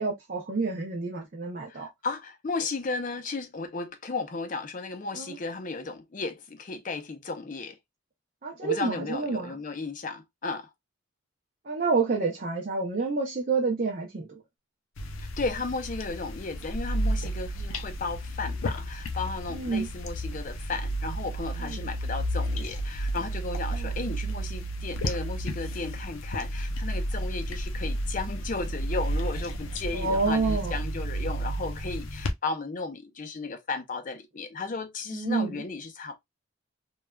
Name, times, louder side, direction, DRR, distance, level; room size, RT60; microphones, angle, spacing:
voice 1, 0.0-1.9 5.2-5.4 8.4-9.5 11.7-14.3 19.5-19.9 21.7-21.8 23.7-23.9 29.9-30.8 35.1-35.6, right 4 dB, 45° right, 0.6 m, -28 dB
voice 2, 1.7-7.8 8.6-10.7 15.2-36.2, left 3 dB, 40° left, 0.5 m, -34 dB
sound 1, 15.0-32.3, right 1 dB, 90° left, 0.6 m, -32 dB
3.2 x 2.3 x 2.2 m
head